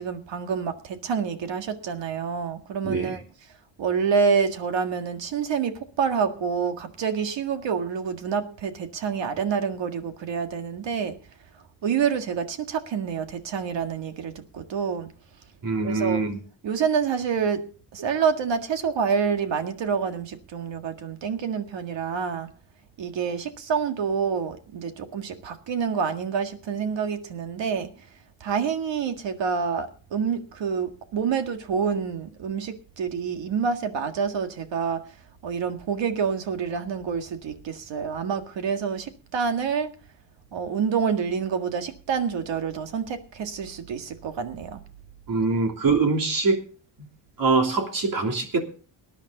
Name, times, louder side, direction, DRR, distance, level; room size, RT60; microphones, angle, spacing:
voice 1, 0.0-3.2 3.8-11.2 11.8-15.1 15.8-16.2 16.6-17.6 17.9-22.5 23.0-27.9 28.4-35.0 35.4-39.9 40.5-44.8, right 6 dB, 70° right, 7 dB, 1.9 m, -27 dB
voice 2, 2.8-3.2 15.6-16.4 45.3-46.6 47.4-48.6, right 4 dB, 50° right, 3 dB, 3.1 m, -23 dB
19.5 x 10.5 x 4.0 m, 0.38 s
wide cardioid pair, 165°, 45 cm